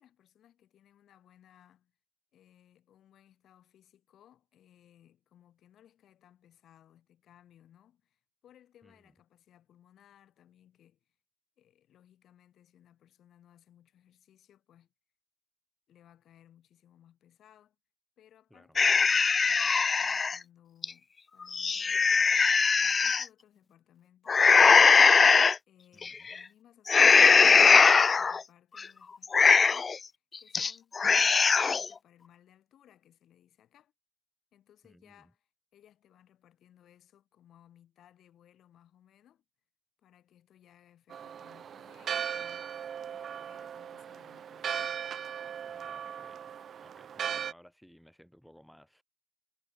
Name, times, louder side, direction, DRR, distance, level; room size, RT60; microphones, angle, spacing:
voice 1, 0.0-1.9 2.3-11.2 11.6-14.9 15.9-17.8 18.2-33.9 34.5-39.4 40.0-42.7 43.1-45.0, left 11 dB, 70° left, 7.6 m, -62 dB
sound 1, 18.8-20.4 20.8-20.9 21.4-23.2 24.3-25.6 26.0-26.4 26.9-28.4 28.8-28.9 29.2-30.0 30.3-30.7 31.0-31.9, left 5 dB, 35° left, 0.3 m, -21 dB
voice 2, 25.9-26.3 34.8-35.3 45.6-46.4 46.8-49.0, equal, ahead, 4.7 m, -58 dB
Church bell, 41.1-47.5, right 8 dB, 60° right, 0.9 m, -38 dB
cardioid pair, 90°, 0 cm